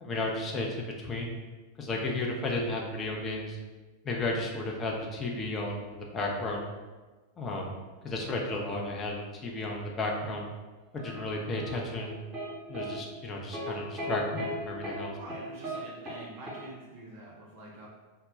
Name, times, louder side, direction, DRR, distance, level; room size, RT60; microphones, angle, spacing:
voice 1, 0.0-1.3 1.8-3.6 4.0-6.7 7.4-7.7 8.0-10.5 10.9-12.2 12.7-15.2, left 2 dB, 25° left, 0 dB, 0.4 m, -33 dB
sound 1, 11.0-12.5 12.7-12.9 13.5-13.7 14.0-14.5 14.8-15.0 15.3-15.8 16.1-16.2 16.5-16.6, right 1 dB, 25° right, 1.0 m, -37 dB
voice 2, 15.1-17.9, right 1 dB, 50° right, -5 dB, 0.5 m, -46 dB
2.1 x 2.0 x 3.5 m, 1.3 s
figure-of-eight pair, 90°, 0 cm